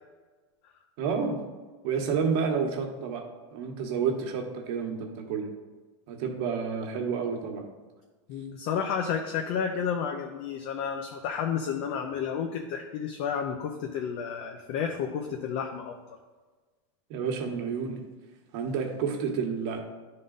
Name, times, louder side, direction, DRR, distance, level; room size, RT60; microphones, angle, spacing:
voice 1, 1.0-1.4 1.8-3.2 3.5-5.5 6.1-7.6 17.1-18.0 18.5-19.8, right 6 dB, 55° right, 3 dB, 1.2 m, -30 dB
voice 2, 8.3-16.0, left 7 dB, 50° left, 4 dB, 0.6 m, -31 dB
11.0 x 3.8 x 3.9 m, 1.3 s
supercardioid pair, 145°, 15 cm